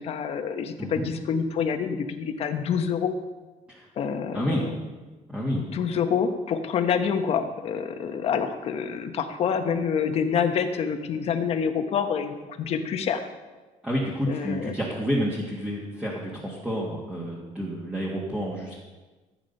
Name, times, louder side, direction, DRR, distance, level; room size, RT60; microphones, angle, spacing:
voice 1, 0.0-3.1 4.0-4.7 5.5-13.3 14.3-14.7, left 7 dB, 50° left, 7 dB, 1.2 m, -27 dB
voice 2, 4.3-4.6 5.3-5.6 13.8-18.8, equal, 10° right, -4 dB, 2.0 m, -29 dB
15.0 x 8.8 x 5.5 m, 1.3 s
cardioid pair, 145°, 13 cm